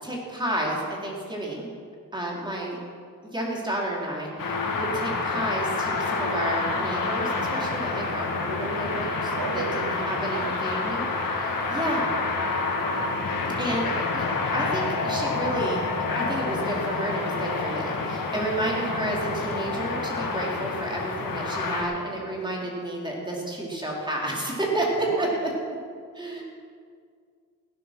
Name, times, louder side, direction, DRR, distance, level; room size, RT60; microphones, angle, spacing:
voice 1, 0.0-1.7 2.1-2.8 3.2-11.1 11.4-12.2 13.5-14.2 14.5-15.8 16.1-25.3 26.1-26.4, right 1 dB, 15° right, -3 dB, 3.9 m, -31 dB
sound 1, 4.4-21.8, left 3 dB, 85° left, 2.1 m, -28 dB
voice 2, 9.3-10.7 11.5-11.9 25.1-25.5, right 5 dB, 80° right, 7 dB, 0.9 m, -36 dB
18.0 x 10.0 x 6.1 m, 2.1 s
wide cardioid pair, 105°, 33 cm